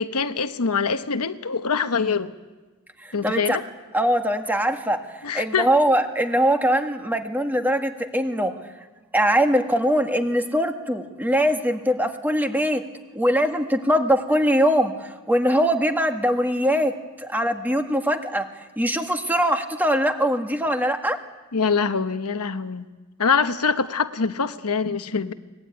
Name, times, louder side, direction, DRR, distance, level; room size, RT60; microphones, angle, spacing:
voice 1, 0.0-2.3 3.1-3.6 5.2-5.7 21.5-22.9 23.2-25.3, left 5 dB, 80° left, 10 dB, 1.1 m, -24 dB
voice 2, 3.0-3.6 3.9-8.5 9.1-12.8 13.1-16.9 17.2-18.5 18.8-21.2, equal, 10° right, 5 dB, 1.7 m, -22 dB
23.5 x 20.0 x 9.5 m, 1.2 s
head